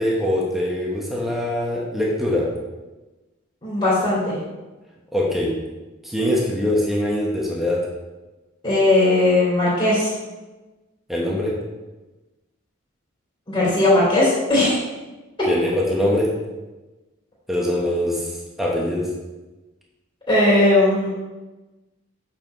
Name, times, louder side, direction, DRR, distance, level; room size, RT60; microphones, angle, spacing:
voice 1, 0.0-2.5 5.1-5.5 6.0-7.8 11.1-11.5 15.5-16.3 17.5-18.3 18.6-19.1, left 1 dB, ahead, -4 dB, 1.2 m, -22 dB
voice 2, 3.6-4.4 8.6-10.1 13.5-14.8 20.3-21.1, left 2 dB, 25° left, -9 dB, 2.8 m, -18 dB
8.3 x 6.8 x 3.2 m, 1.1 s
head